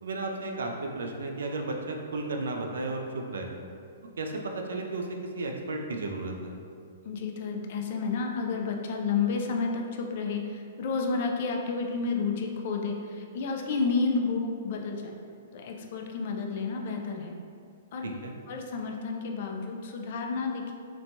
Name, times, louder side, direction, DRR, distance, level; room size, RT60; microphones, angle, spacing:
voice 1, 0.0-3.5 4.2-5.1 5.3-6.5 18.0-18.3, right 2 dB, 85° right, 2 dB, 0.3 m, -34 dB
voice 2, 7.1-15.2 15.5-17.4 17.9-18.1 18.5-20.7, left 4 dB, 55° left, 2 dB, 0.3 m, -31 dB
3.0 x 2.1 x 2.6 m, 2.3 s
hypercardioid pair, 150°, 0 cm